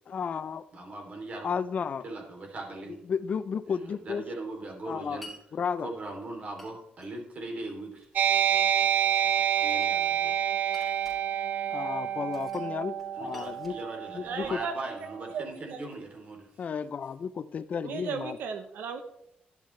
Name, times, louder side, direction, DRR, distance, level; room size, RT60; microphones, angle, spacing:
voice 1, 0.1-0.6 1.4-2.0 3.1-4.2 4.9-5.2 5.5-5.9 11.7-13.8 14.1-14.6 16.6-18.4, left 6 dB, 50° left, 14 dB, 0.5 m, -33 dB
voice 2, 0.7-1.5 2.0-3.0 3.7-5.3 5.8-8.1 9.6-10.3 13.1-16.5, right 2 dB, 45° right, 1 dB, 3.1 m, -40 dB
Glass, 5.2-5.4 6.6-7.1 8.0-8.7 9.5-10.2 10.7-11.2 12.3-12.7 13.0-14.6, left 1 dB, ahead, 3.7 m, -51 dB
sound 1, 8.2-15.2, right 9 dB, 65° right, 0.7 m, -28 dB
voice 3, 14.2-14.7 15.3-15.8 17.8-19.0, right 6 dB, 90° right, 7 dB, 0.9 m, -35 dB
11.5 x 11.5 x 3.3 m, 0.77 s
cardioid pair, 130°, 3 cm